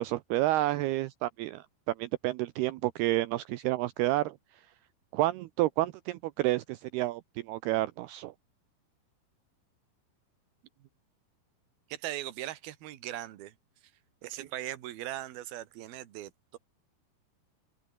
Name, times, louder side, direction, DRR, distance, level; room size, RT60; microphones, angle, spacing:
voice 1, 0.0-4.3 5.1-7.2 7.5-8.3, right 17 dB, 80° right, 2.4 m, -30 dB
voice 2, 11.9-13.5 14.2-16.6, right 14 dB, 65° right, 3.2 m, -39 dB
open air
omnidirectional pair, 5.3 m